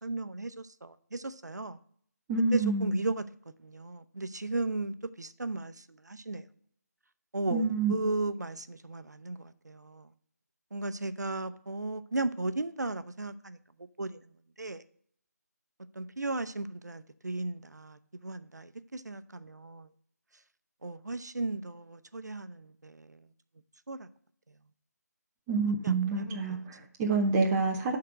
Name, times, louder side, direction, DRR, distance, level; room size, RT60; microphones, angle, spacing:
voice 1, 0.0-1.8 2.5-3.2 3.6-6.4 7.3-10.1 10.7-13.6 14.0-14.2 14.6-14.8 16.0-19.9 20.8-23.2 23.9-24.1 25.8-26.6, right 2 dB, 75° right, 0.6 m, -36 dB
voice 2, 2.3-2.9 7.5-7.9 25.5-28.0, right 3 dB, 5° right, 0.4 m, -27 dB
10.5 x 3.8 x 4.9 m
figure-of-eight pair, 155°, 9 cm